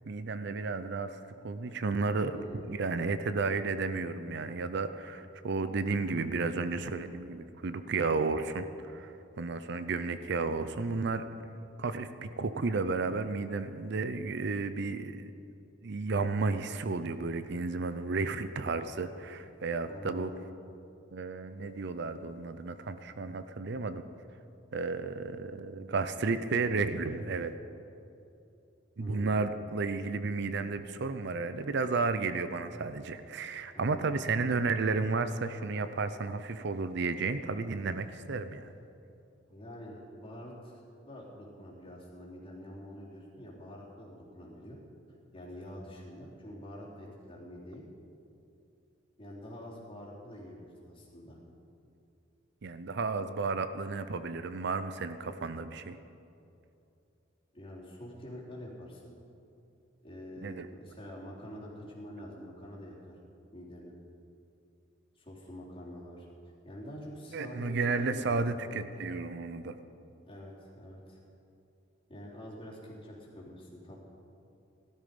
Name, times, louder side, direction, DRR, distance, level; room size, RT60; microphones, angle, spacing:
voice 1, 0.1-11.2 11.8-15.3 15.8-20.3 21.1-24.0 24.7-27.5 29.0-38.7 52.6-56.0 60.4-60.7 67.3-69.8, right 4 dB, 65° right, 11 dB, 0.6 m, -32 dB
voice 2, 2.2-2.8 19.8-20.4 29.0-29.5 33.7-34.1 39.5-40.7 41.0-44.8 45.3-47.8 49.2-51.4 57.5-59.1 60.0-63.2 63.5-63.9 65.2-66.3 66.6-68.5 70.2-71.2 72.1-74.0, equal, 30° left, -5 dB, 3.5 m, -46 dB
16.5 x 12.5 x 5.3 m, 2.7 s
head